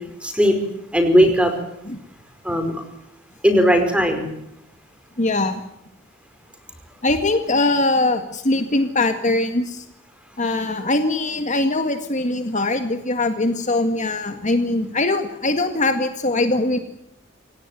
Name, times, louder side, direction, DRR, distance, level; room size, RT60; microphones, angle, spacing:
voice 1, 0.2-0.5 0.9-1.5 2.4-2.7 3.4-4.3, equal, 5° right, 6 dB, 4.9 m, -17 dB
voice 2, 2.5-2.8 5.2-5.6 7.0-9.9 10.4-16.8, left 2 dB, 40° left, 7 dB, 1.9 m, -22 dB
27.5 x 17.5 x 9.2 m, 0.79 s
head